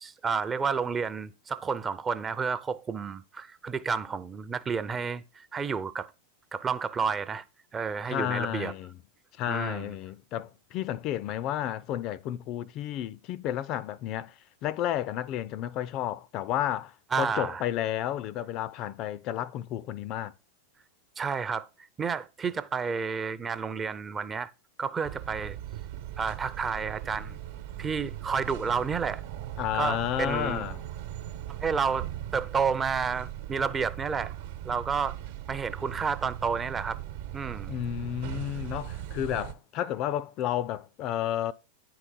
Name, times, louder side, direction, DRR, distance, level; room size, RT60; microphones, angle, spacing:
voice 1, 0.0-6.1 6.5-7.4 7.7-8.7 9.5-9.9 17.1-17.6 21.2-21.7 22.0-24.5 24.8-25.6 26.2-27.4 27.8-29.2 29.7-30.6 31.6-32.1 32.3-34.3 34.6-35.2 35.5-37.0 37.3-37.7, right 5 dB, 20° right, 0.5 m, -30 dB
voice 2, 8.1-8.9 9.4-14.3 14.6-20.3 29.6-30.8 37.7-41.5, left 12 dB, 40° left, 0.4 m, -31 dB
sound 1, 25.0-39.5, right 12 dB, 55° right, 1.0 m, -39 dB
9.7 x 4.8 x 5.3 m
figure-of-eight pair, 90°, 0 cm